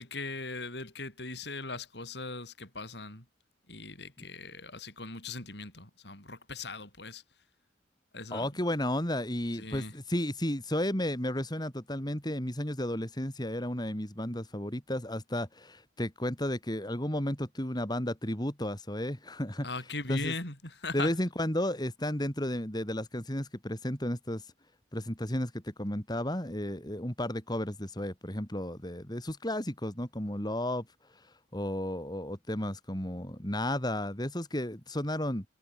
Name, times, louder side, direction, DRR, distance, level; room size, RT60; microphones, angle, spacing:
voice 1, 0.0-3.2 3.7-7.2 8.1-8.5 9.6-9.9 19.6-21.1, left 3 dB, 65° left, 7.2 m, -39 dB
voice 2, 8.3-19.7 20.1-20.3 20.9-24.5 24.9-30.9 31.5-35.4, left 1 dB, 20° left, 4.3 m, -33 dB
head